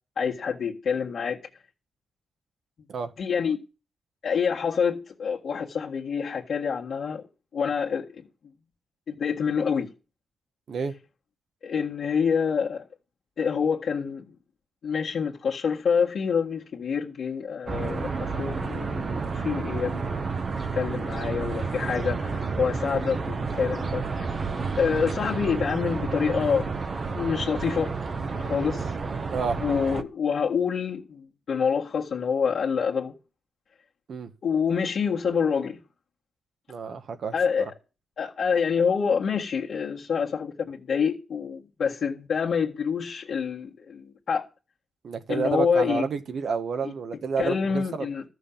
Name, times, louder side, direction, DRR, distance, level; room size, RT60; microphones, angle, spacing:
voice 1, 0.2-1.4 3.2-3.6 4.2-7.2 7.5-8.2 9.1-9.9 11.6-12.8 13.4-14.3 14.8-20.3 20.7-24.2 24.8-26.7 27.1-27.9 28.4-28.9 29.6-33.1 34.4-35.8 37.3-37.7 38.2-44.4 45.3-46.1 46.8-46.9 47.4-48.2, left 6 dB, 60° left, 1.9 m, -27 dB
sound 1, 17.7-30.0, right 4 dB, 40° right, 1.1 m, -30 dB
voice 2, 36.7-37.7 45.0-48.1, right 5 dB, 60° right, 1.5 m, -30 dB
13.5 x 6.5 x 7.1 m
cardioid pair, 115°, 0 cm